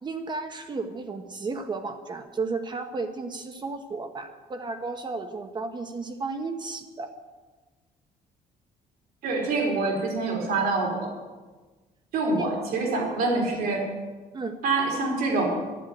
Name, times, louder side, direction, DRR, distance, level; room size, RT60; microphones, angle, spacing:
voice 1, 0.0-7.1 12.2-12.5 14.3-14.5, right 3 dB, 30° right, 7 dB, 1.1 m, -33 dB
voice 2, 9.2-11.1 12.1-13.9 14.6-15.5, right 3 dB, 80° right, 1 dB, 4.0 m, -26 dB
12.0 x 11.5 x 9.1 m, 1.3 s
cardioid pair, 130°, 15 cm